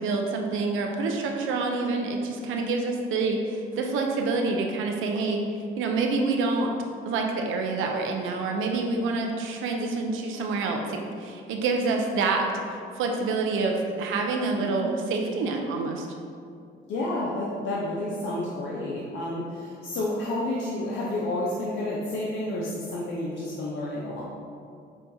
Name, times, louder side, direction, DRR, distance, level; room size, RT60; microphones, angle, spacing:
voice 1, 0.0-5.4 5.8-6.7 7.1-16.1, right 3 dB, 80° right, 2 dB, 0.5 m, -27 dB
voice 2, 14.6-14.9 16.9-24.2, left 1 dB, 70° left, -5 dB, 0.6 m, -30 dB
5.6 x 2.3 x 2.6 m, 2.4 s
cardioid pair, 90°, 20 cm